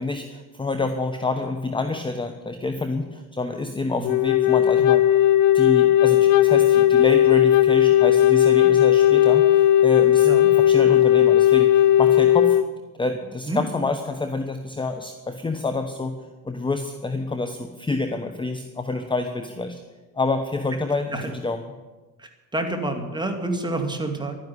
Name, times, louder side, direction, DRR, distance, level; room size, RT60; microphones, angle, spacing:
voice 1, 0.0-5.0 5.5-10.3 10.5-12.6 13.0-16.1 16.4-19.8 20.1-21.6, left 3 dB, 15° left, 7 dB, 1.0 m, -27 dB
Wind instrument woodwind instrument, 4.0-12.7, left 12 dB, 55° left, 0.7 m, -16 dB
voice 2, 22.2-24.3, right 2 dB, 10° right, 4 dB, 2.3 m, -28 dB
12.0 x 9.9 x 9.7 m, 1.2 s
cardioid pair, 115°, 38 cm